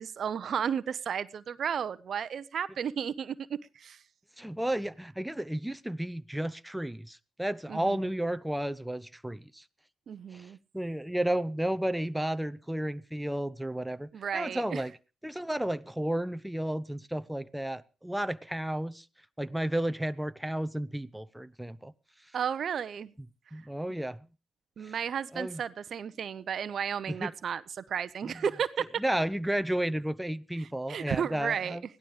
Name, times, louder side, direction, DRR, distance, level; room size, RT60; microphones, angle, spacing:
voice 1, 0.0-4.0 7.7-8.0 10.1-10.6 14.1-14.8 22.3-23.1 24.8-29.0 30.9-31.8, right 7 dB, 55° right, 0.8 m, -33 dB
voice 2, 4.4-9.6 10.3-14.9 15.2-19.1 19.4-21.9 23.5-24.2 24.8-24.9 25.3-25.6 27.1-27.3 29.0-31.8, right 1 dB, 5° right, 0.9 m, -32 dB
16.0 x 12.0 x 5.0 m
hypercardioid pair, 50°, 0 cm